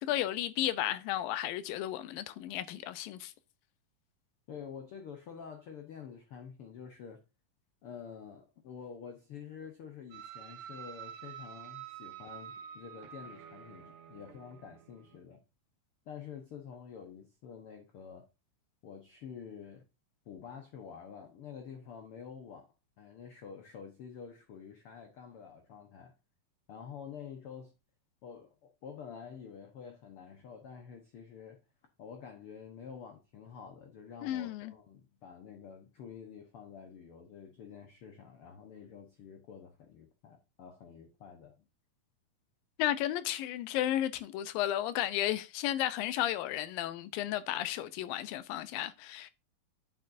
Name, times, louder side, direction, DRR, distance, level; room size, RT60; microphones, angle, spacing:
voice 1, 0.0-3.3 34.2-34.7 42.8-49.3, left 13 dB, 85° left, 2.5 m, -33 dB
voice 2, 4.5-7.2 7.8-15.4 16.1-18.3 18.8-19.8 20.2-26.1 26.7-27.7 28.2-31.6 32.0-41.6, left 7 dB, 65° left, 1.4 m, -48 dB
sound 1, 10.1-15.2, right 9 dB, 75° right, 2.0 m, -48 dB
9.3 x 7.6 x 2.6 m
omnidirectional pair, 4.0 m